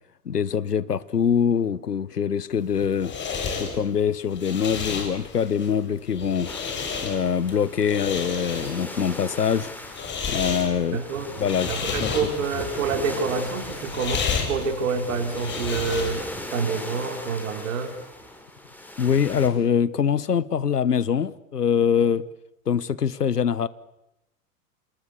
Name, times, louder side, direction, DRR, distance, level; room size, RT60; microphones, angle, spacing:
voice 1, 0.2-3.1 3.6-6.5 7.0-9.7 10.3-11.0 11.4-12.1 19.0-22.2 22.7-23.7, left 7 dB, 75° left, 1.3 m, -24 dB
sound 1, 2.6-16.4, left 5 dB, 25° left, 6.6 m, -32 dB
sound 2, 6.5-19.5, left 1 dB, 5° left, 4.7 m, -38 dB
voice 2, 10.9-11.3 11.6-16.2 16.5-17.9, right 5 dB, 55° right, 5.2 m, -27 dB
29.5 x 27.0 x 7.0 m
figure-of-eight pair, 95°, 47 cm